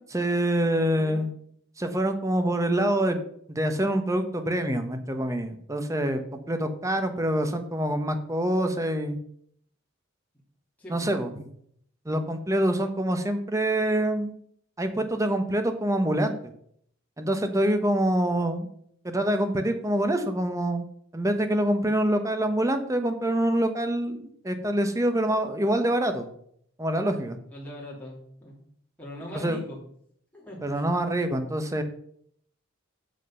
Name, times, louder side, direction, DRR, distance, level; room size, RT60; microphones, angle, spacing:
voice 1, 0.1-1.3 1.8-3.2 3.5-9.2 10.9-11.4 12.0-14.3 14.8-16.5 17.2-18.7 19.0-20.8 21.1-26.3 26.8-27.4 29.3-29.6 30.6-31.8, right 1 dB, 15° right, 7 dB, 1.0 m, -26 dB
voice 2, 0.9-1.3 10.8-11.1 27.5-28.6 29.0-29.8 30.3-30.6, equal, 10° left, -5 dB, 2.6 m, -41 dB
7.7 x 7.6 x 5.5 m, 0.66 s
head